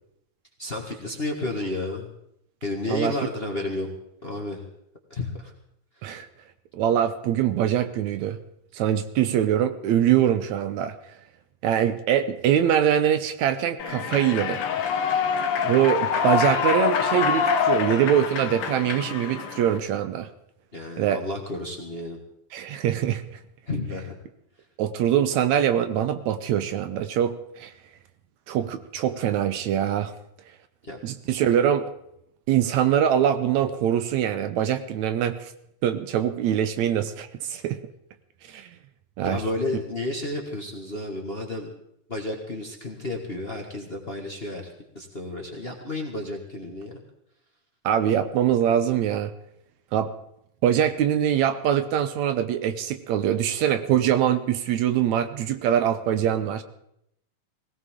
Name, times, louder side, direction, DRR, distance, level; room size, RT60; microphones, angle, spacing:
voice 1, 0.6-2.1 2.6-3.9 4.2-4.6 5.1-5.5 20.7-22.2 23.7-24.2 30.8-31.0 39.2-41.7 42.1-46.9, left 2 dB, 25° left, 1 dB, 1.4 m, -31 dB
voice 2, 2.9-3.3 6.0-6.3 6.7-8.4 8.7-11.0 11.6-14.6 15.6-20.3 21.0-21.2 22.5-23.4 24.8-27.7 28.5-30.1 31.0-31.9 32.5-35.5 35.8-37.8 38.5-38.7 39.2-39.4 39.7-39.8 47.8-49.3 49.9-50.1 50.6-56.6, right 10 dB, 75° right, 10 dB, 2.1 m, -23 dB
Human voice / Clapping / Cheering, 13.8-19.8, left 6 dB, 60° left, 1.7 m, -25 dB
20.5 x 17.0 x 3.8 m, 0.76 s
omnidirectional pair, 3.5 m